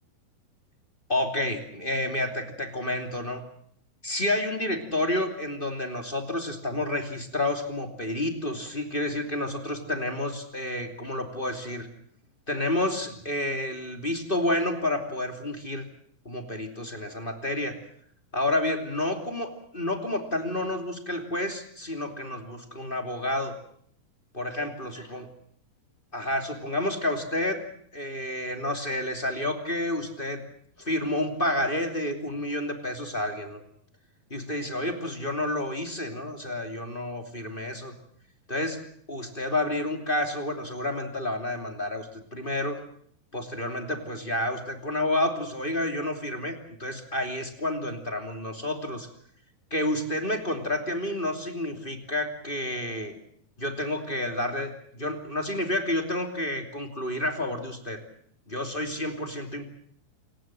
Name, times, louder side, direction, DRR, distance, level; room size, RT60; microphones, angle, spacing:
voice 1, 1.1-3.4 4.0-11.9 12.5-15.8 16.2-17.8 18.3-23.5 24.3-25.3 26.1-27.7 27.9-30.4 30.8-33.6 34.3-37.9 38.5-38.8 39.1-42.8 43.3-49.1 49.7-53.1 53.6-58.0 58.5-59.6, left 1 dB, 15° left, 6 dB, 2.4 m, -30 dB
29.0 x 19.0 x 7.6 m, 0.65 s
omnidirectional pair, 4.3 m